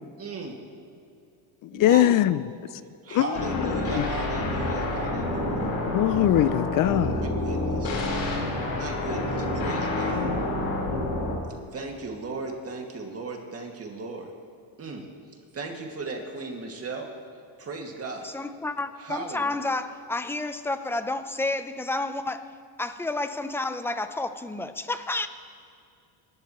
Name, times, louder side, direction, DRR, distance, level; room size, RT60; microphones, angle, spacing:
voice 1, 0.2-0.6 1.7-2.2 3.0-5.6 7.0-8.0 8.7-10.3 11.7-14.3 14.8-15.1 15.5-17.1 17.6-18.3 19.0-19.5, right 3 dB, 30° right, 2.2 m, -36 dB
voice 2, 1.7-2.4 3.1-3.3 3.5-4.1 5.9-7.2, left 14 dB, 50° left, 0.4 m, -22 dB
sound 1, 3.3-11.3, left 2 dB, 75° left, 4.3 m, -28 dB
voice 3, 18.2-22.5 22.8-25.3, left 2 dB, 5° left, 0.6 m, -30 dB
27.0 x 12.5 x 3.1 m
cardioid pair, 125°, 45 cm